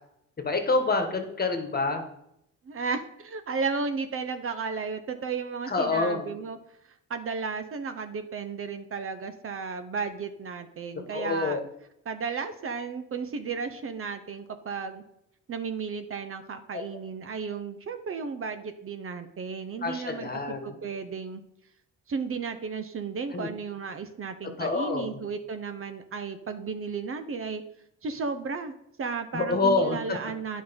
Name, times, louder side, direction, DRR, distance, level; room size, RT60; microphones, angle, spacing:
voice 1, 0.4-2.0 5.7-6.3 11.1-11.6 19.8-20.8 23.3-23.5 24.6-25.2 29.3-30.2, left 3 dB, 30° left, 6 dB, 1.5 m, -27 dB
voice 2, 2.6-6.6 7.1-11.6 12.0-15.0 15.5-21.4 22.1-27.6 28.0-30.6, right 5 dB, 45° right, 9 dB, 0.9 m, -34 dB
9.4 x 5.4 x 5.3 m, 0.79 s
cardioid pair, 90°, 30 cm